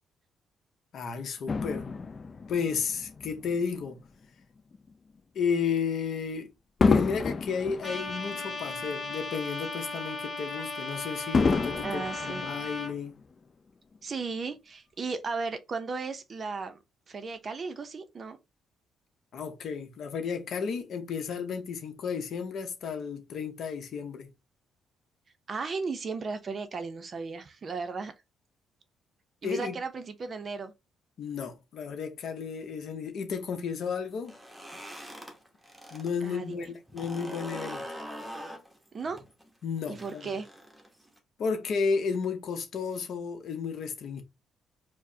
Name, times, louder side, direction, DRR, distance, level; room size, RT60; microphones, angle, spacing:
voice 1, 0.9-1.9 2.5-4.0 5.3-6.5 6.9-13.2 19.3-24.3 29.4-29.8 31.2-34.3 35.9-37.9 39.6-40.3 41.4-44.2, left 6 dB, 60° left, 0.8 m, -33 dB
Fireworks, 1.5-4.1 4.7-4.9 6.8-9.3 9.7-9.8 11.3-13.2 14.0-14.1, left 4 dB, 30° left, 0.4 m, -29 dB
Trumpet, 7.8-12.9, left 2 dB, 10° left, 1.5 m, -36 dB
voice 2, 11.8-12.5 14.0-16.8 17.1-18.4 25.5-28.1 29.4-30.7 36.2-36.7 38.9-39.2 39.9-40.5, right 4 dB, 35° right, 0.5 m, -35 dB
sound 1, 34.2-36.1 36.4-41.2, equal, 10° right, 0.8 m, -43 dB
4.7 x 2.1 x 2.7 m
cardioid pair, 125°, 0 cm